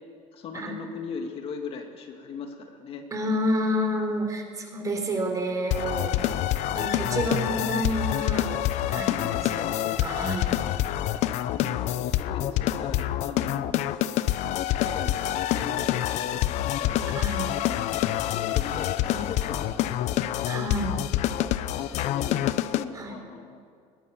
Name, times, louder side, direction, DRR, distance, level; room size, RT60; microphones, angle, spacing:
voice 1, 0.3-3.0 5.8-6.2 9.1-9.4 11.5-13.8 14.5-17.0 17.6-20.6 21.4-23.6, left 5 dB, 50° left, 4 dB, 2.0 m, -39 dB
voice 2, 3.1-8.5 8.8-10.6 17.1-17.5 20.5-21.0 22.9-23.1, equal, 25° right, 3 dB, 3.8 m, -29 dB
sound 1, 5.7-22.8, left 13 dB, 65° left, 0.8 m, -27 dB
21.5 x 17.5 x 7.2 m, 2.3 s
cardioid pair, 140°, 13 cm